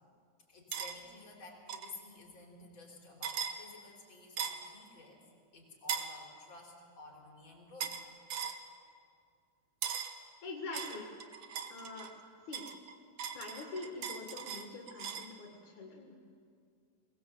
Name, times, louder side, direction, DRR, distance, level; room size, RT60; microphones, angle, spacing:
voice 1, 0.5-5.2 5.5-8.0, left 3 dB, 40° left, 1 dB, 4.5 m, -53 dB
sound 1, 0.7-1.0 1.7-1.9 3.2-3.6 4.4-4.7 5.9-6.1 7.8-8.0 8.3-8.6 9.8-10.2 10.7-12.1 12.5-15.3, right 8 dB, 60° right, 2.1 m, -39 dB
voice 2, 10.4-11.1 11.7-12.1 12.4-12.7 13.3-16.1, left 3 dB, 70° left, 0 dB, 3.2 m, -44 dB
22.5 x 20.0 x 7.8 m, 2.3 s
omnidirectional pair, 3.6 m